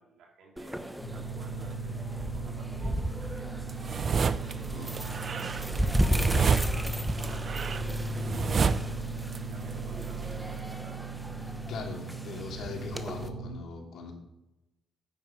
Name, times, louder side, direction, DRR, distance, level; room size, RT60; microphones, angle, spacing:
voice 1, 0.0-3.6 4.3-9.1 9.4-11.1, right 4 dB, 80° right, 0 dB, 2.8 m, -53 dB
sound 1, 0.6-13.3, equal, 5° right, 0.9 m, -35 dB
sound 2, 1.0-13.5, right 3 dB, 10° left, 2.9 m, -37 dB
sound 3, 3.7-4.5 4.9-9.4 9.6-10.6, right 6 dB, 45° right, 0.5 m, -29 dB
voice 2, 11.7-14.1, left 4 dB, 70° left, 1 dB, 2.6 m, -40 dB
9.3 x 9.1 x 5.3 m, 0.95 s
cardioid pair, 90°, 0 cm